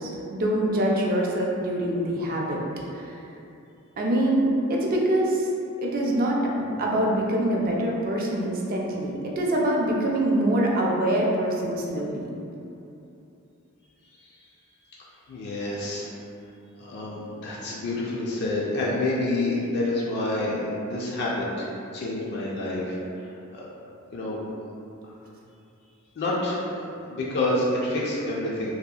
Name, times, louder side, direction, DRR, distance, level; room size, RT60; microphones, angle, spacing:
voice 1, 0.0-2.6 3.0-3.2 4.0-5.5 5.8-12.3, right 1 dB, 40° right, -2 dB, 0.3 m, -24 dB
voice 2, 15.3-16.1 16.8-21.7 21.9-23.0 23.5-23.7 24.1-24.4 26.2-28.7, left 2 dB, 50° left, -5 dB, 0.4 m, -28 dB
2.7 x 2.3 x 2.3 m, 2.7 s
head